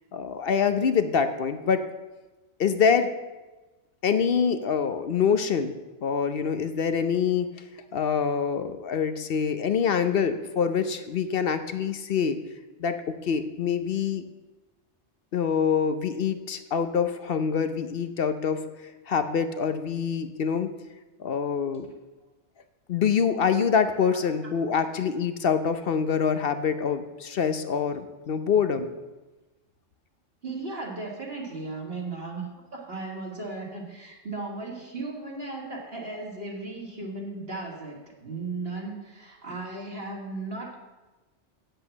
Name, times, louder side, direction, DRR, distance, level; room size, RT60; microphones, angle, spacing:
voice 1, 0.1-1.9 2.6-3.1 4.0-5.7 6.0-7.5 7.9-12.4 12.8-13.0 13.2-14.2 15.3-18.6 19.1-20.7 21.2-21.9 22.9-28.9, left 6 dB, 55° left, 9 dB, 0.8 m, -25 dB
voice 2, 30.4-40.8, right 3 dB, 55° right, -1 dB, 2.3 m, -36 dB
8.6 x 7.9 x 7.1 m, 1.2 s
omnidirectional pair, 1.2 m